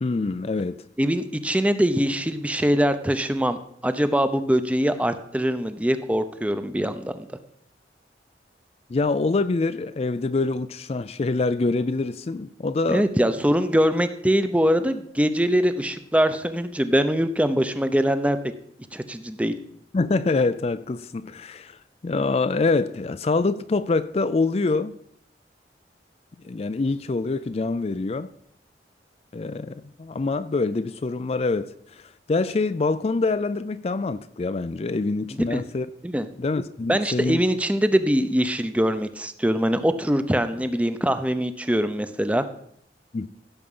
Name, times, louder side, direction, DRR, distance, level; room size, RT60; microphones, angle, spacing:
voice 1, 0.0-0.8 8.9-13.1 19.9-21.8 22.0-24.9 26.4-28.3 29.3-35.9 36.4-37.4 43.1-43.3, left 3 dB, 35° left, 0.4 m, -25 dB
voice 2, 1.0-7.2 12.9-18.4 18.9-19.5 35.5-35.6 36.0-36.3 36.9-42.4, equal, 10° right, 0.7 m, -23 dB
16.0 x 7.1 x 5.5 m
head